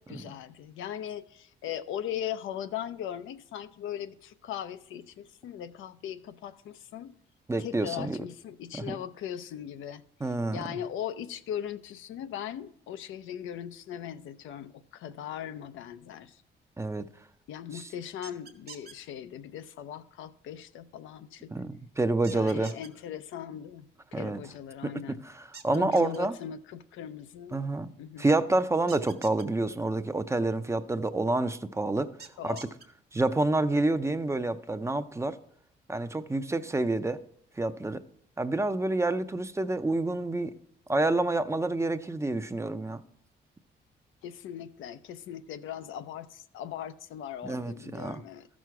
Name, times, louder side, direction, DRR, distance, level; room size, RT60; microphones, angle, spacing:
voice 1, 0.0-7.1 7.6-16.4 17.5-21.5 22.3-25.3 25.7-27.6 28.0-28.3 32.4-32.6 44.2-48.5, left 10 dB, 80° left, 0.6 m, -39 dB
voice 2, 7.5-8.2 8.9-9.0 10.2-10.6 16.8-17.1 17.7-17.8 21.5-22.7 24.1-24.4 24.8-24.9 25.2-26.4 27.5-27.9 28.2-32.1 32.4-32.6 33.1-35.4 35.9-37.2 37.6-38.0 38.4-40.5 40.9-43.0 47.4-48.2, right 2 dB, 15° right, 0.5 m, -28 dB
sound 1, 18.2-18.9 22.2-22.9 25.5-26.2 28.9-29.4 32.2-32.8, right 6 dB, 55° right, 1.3 m, -46 dB
13.5 x 6.2 x 4.6 m
cardioid pair, 90°, 20 cm